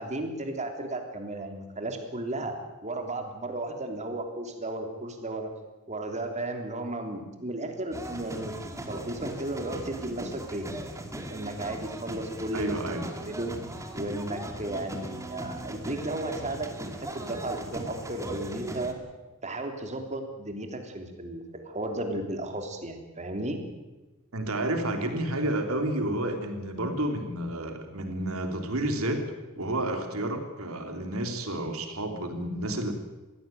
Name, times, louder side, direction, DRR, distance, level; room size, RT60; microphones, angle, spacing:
voice 1, 0.0-2.6 2.8-5.5 5.9-10.7 11.3-12.8 13.1-13.5 13.9-19.0 19.4-23.6, right 2 dB, 35° right, 4 dB, 3.3 m, -34 dB
sound 1, 7.9-18.9, right 1 dB, 15° right, 2.5 m, -38 dB
voice 2, 12.5-13.0 24.3-29.2 29.6-32.9, right 1 dB, 75° right, 5 dB, 3.6 m, -30 dB
22.0 x 16.0 x 9.3 m, 1.2 s
head